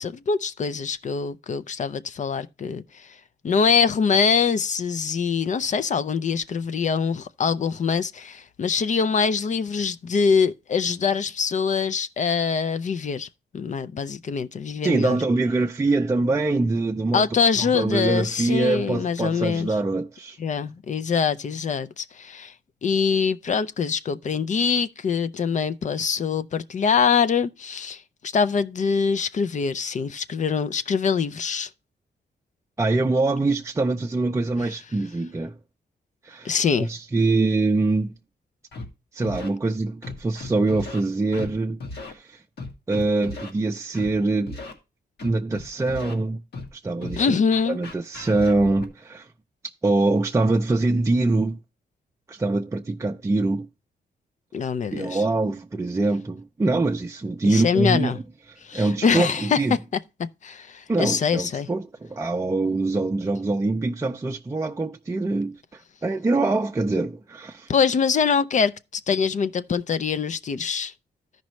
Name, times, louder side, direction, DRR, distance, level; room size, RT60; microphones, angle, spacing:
voice 1, 0.0-3.1 3.4-13.3 13.5-15.2 17.1-19.7 20.4-22.5 22.8-28.0 28.3-31.7 36.4-36.9 47.2-47.8 54.5-55.2 57.4-58.2 58.6-59.8 60.4-61.7 67.7-70.9, left 6 dB, 45° left, 0.5 m, -24 dB
voice 2, 14.8-17.3 17.5-20.4 32.8-35.6 36.2-38.1 39.1-42.4 42.9-44.6 45.2-46.4 46.7-47.4 47.7-49.3 49.8-51.6 52.3-53.7 54.9-58.2 58.7-59.8 60.9-67.7, right 2 dB, 15° right, 0.5 m, -24 dB
Scratching (performance technique), 38.7-38.8 39.2-39.5 40.0-41.0 41.3-41.5 41.8-42.1 42.6-43.5 43.9-44.1 44.5-44.7 45.2-46.1 46.5-46.7 47.0-48.9, left 3 dB, 75° left, 1.8 m, -36 dB
13.5 x 5.3 x 3.1 m
cardioid pair, 110°, 17 cm